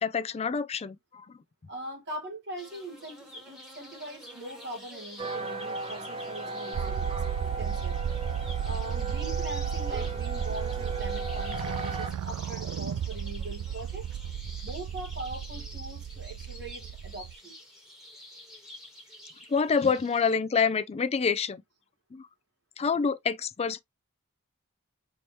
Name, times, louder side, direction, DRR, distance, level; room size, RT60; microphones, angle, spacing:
voice 1, 0.0-1.4 19.5-21.6 22.1-22.3 22.8-23.8, left 5 dB, 30° left, 0.4 m, -27 dB
voice 2, 1.7-7.2 7.6-8.0 8.6-14.0 14.6-17.5, right 1 dB, 50° right, 1.5 m, -41 dB
sound 1, 2.6-20.3, left 1 dB, ahead, 1.4 m, -48 dB
sound 2, 5.2-12.1, right 2 dB, 25° right, 0.8 m, -36 dB
sound 3, 6.7-17.4, right 9 dB, 85° right, 0.3 m, -34 dB
4.5 x 2.8 x 3.1 m
head